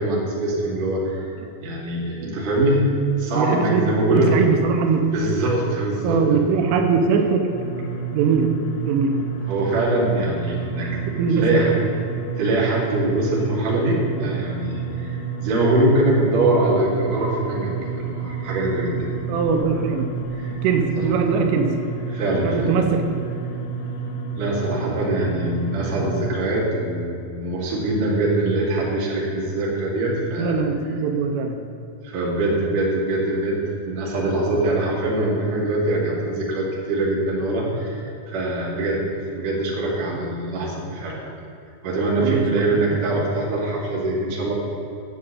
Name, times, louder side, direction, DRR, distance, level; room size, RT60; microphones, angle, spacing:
voice 1, 0.0-1.3 1.6-4.3 5.1-6.6 9.5-10.9 11.3-11.8 12.4-19.1 20.3-20.6 21.0-21.1 22.1-22.8 24.4-30.5 32.0-33.6 33.8-39.0 39.3-41.2 41.8-44.5, right 1 dB, 50° right, -4 dB, 3.3 m, -23 dB
voice 2, 3.4-3.8 4.1-5.1 6.0-7.6 8.1-8.5 8.8-9.2 10.8-10.9 11.2-11.6 19.3-20.1 20.6-21.8 22.4-23.2 30.4-31.6 42.2-42.4 42.7-42.8, right 5 dB, 85° right, 4 dB, 3.4 m, -21 dB
sound 1, 7.5-26.3, right 6 dB, 70° left, 3.3 m, -30 dB
11.0 x 6.7 x 8.4 m, 2.7 s
omnidirectional pair, 5.6 m